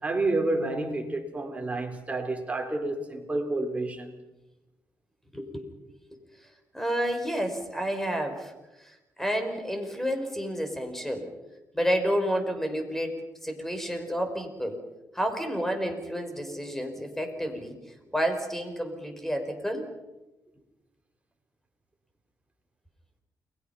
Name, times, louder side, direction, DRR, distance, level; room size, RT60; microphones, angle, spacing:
voice 1, 0.0-4.1, right 2 dB, 20° right, 4.4 m, -29 dB
voice 2, 5.3-5.6 6.7-8.5 8.8-8.9 9.2-11.3 11.7-13.2 13.4-14.8 15.1-17.8 18.1-19.8, equal, 5° left, 5.3 m, -30 dB
30.0 x 22.0 x 5.8 m
cardioid pair, 95°, 7 cm